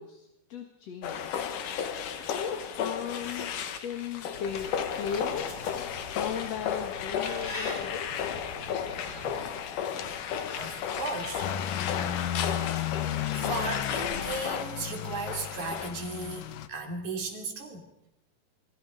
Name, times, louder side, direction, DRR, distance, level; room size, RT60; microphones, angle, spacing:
voice 1, 0.0-1.4 2.3-5.8 6.1-8.1, left 7 dB, 55° left, 5 dB, 2.7 m, -37 dB
sound 1, 1.0-15.9, left 8 dB, 75° left, 3.0 m, -34 dB
sound 2, 4.3-9.4, left 2 dB, 30° left, 3.9 m, -43 dB
voice 2, 10.5-11.5 12.6-12.9 13.3-17.9, right 3 dB, 65° right, 4 dB, 4.3 m, -36 dB
sound 3, 11.4-16.7, left 11 dB, 90° left, 2.7 m, -34 dB
28.5 x 24.0 x 5.1 m, 0.84 s
omnidirectional pair, 3.8 m